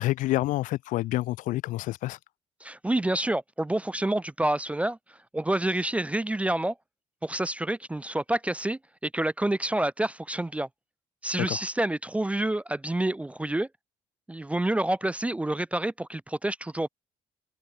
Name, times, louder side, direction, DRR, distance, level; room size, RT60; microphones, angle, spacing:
voice 1, 0.0-2.2 11.4-11.6, left 16 dB, 85° left, 1.8 m, -28 dB
voice 2, 2.6-6.7 7.2-10.7 11.2-13.7 14.3-16.9, right 1 dB, 10° right, 0.4 m, -28 dB
cardioid pair, 85°, 13 cm